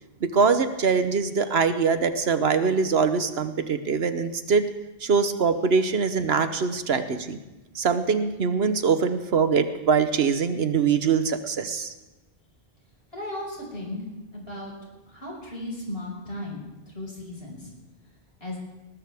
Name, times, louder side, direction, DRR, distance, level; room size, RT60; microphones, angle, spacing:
voice 1, 0.2-4.7 5.0-7.4 7.7-11.9, right 5 dB, 70° right, 9 dB, 1.2 m, -23 dB
voice 2, 13.1-14.0 14.3-14.7 15.1-17.6 18.4-18.6, left 1 dB, 65° left, -2 dB, 6.0 m, -35 dB
20.0 x 19.5 x 3.5 m, 1.0 s
omnidirectional pair, 1.1 m